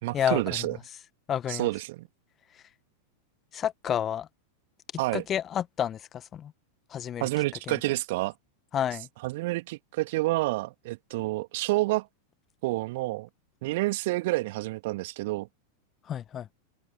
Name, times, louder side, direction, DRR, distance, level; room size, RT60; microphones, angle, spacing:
voice 1, 0.0-0.8 1.5-2.1 5.0-5.2 7.2-8.3 9.2-12.1 12.6-13.3 13.6-15.5, right 20 dB, 50° right, 2.7 m, -29 dB
voice 2, 1.3-1.7 3.5-4.3 5.1-6.5 6.9-7.3 7.7-7.8 8.7-9.1 16.1-16.5, left 9 dB, 25° left, 1.3 m, -30 dB
open air
figure-of-eight pair, 90°, 0 cm